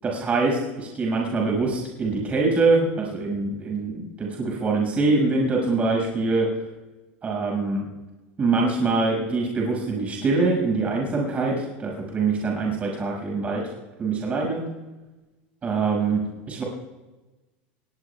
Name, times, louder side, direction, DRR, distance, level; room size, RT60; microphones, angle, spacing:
voice 1, 0.0-6.5 7.2-7.8 8.4-13.6 14.0-14.6 15.6-16.6, right 3 dB, 25° right, -2 dB, 6.5 m, -24 dB
24.0 x 19.0 x 2.4 m, 1.1 s
supercardioid pair, 130°, 6 cm